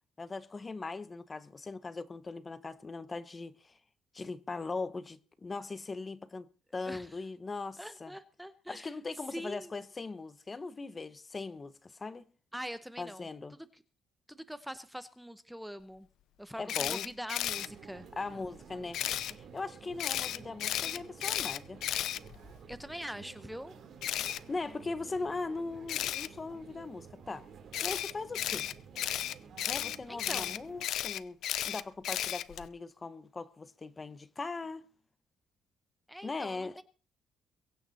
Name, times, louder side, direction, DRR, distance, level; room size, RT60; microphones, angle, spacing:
voice 1, 0.2-3.8 4.1-8.1 8.7-12.3 13.0-13.6 16.6-17.1 18.2-19.0 19.4-21.8 24.5-27.5 27.8-28.7 29.7-31.4 31.7-34.9 36.2-36.8, left 3 dB, 25° left, 1.0 m, -40 dB
voice 2, 7.8-8.9 9.3-9.7 12.5-13.3 13.6-13.8 14.3-16.1 16.4-18.1 22.7-23.7 30.1-30.5 36.1-36.8, equal, ahead, 0.9 m, -43 dB
Camera, 16.7-17.7 18.9-19.3 20.0-22.8 24.0-24.4 25.9-26.3 27.7-32.7, left 12 dB, 75° left, 0.7 m, -34 dB
sound 1, 17.4-30.9, right 6 dB, 55° right, 3.5 m, -52 dB
23.0 x 9.0 x 4.2 m
cardioid pair, 105°, 0 cm